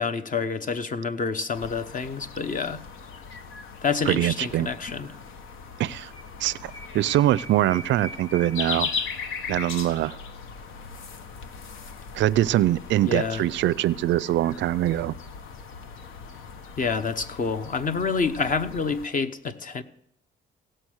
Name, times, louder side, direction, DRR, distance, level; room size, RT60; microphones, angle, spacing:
voice 1, 0.0-2.8 3.8-5.1 13.1-13.4 16.8-19.8, left 5 dB, 45° left, 1.0 m, -28 dB
sound 1, 1.5-19.1, left 5 dB, 85° left, 1.1 m, -38 dB
voice 2, 4.1-4.7 5.8-6.1 6.4-8.9 9.5-10.2 12.1-15.2, right 14 dB, 70° right, 0.4 m, -23 dB
16.5 x 7.7 x 6.3 m
cardioid pair, 90°, 20 cm